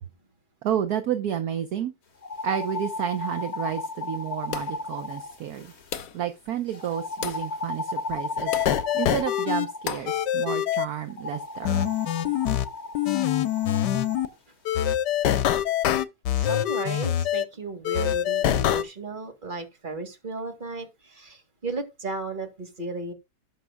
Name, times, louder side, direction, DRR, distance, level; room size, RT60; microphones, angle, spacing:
voice 1, 0.6-1.9 2.4-5.7 6.1-8.5 8.9-11.8, right 10 dB, 65° right, 1.2 m, -30 dB
sound 1, 2.2-6.1 6.7-10.0 11.1-14.3, left 3 dB, 40° left, 1.8 m, -35 dB
sound 2, 4.5-4.9 5.9-6.3 7.2-7.5 8.5-8.8 9.9-10.2, left 8 dB, 55° left, 1.2 m, -34 dB
sound 3, 8.4-9.7 10.1-10.9 11.7-12.7 13.0-14.3 14.7-17.5 17.9-18.8, left 11 dB, 75° left, 1.4 m, -24 dB
voice 2, 16.4-23.1, right 3 dB, 30° right, 2.1 m, -35 dB
18.5 x 6.2 x 2.2 m
omnidirectional pair, 1.9 m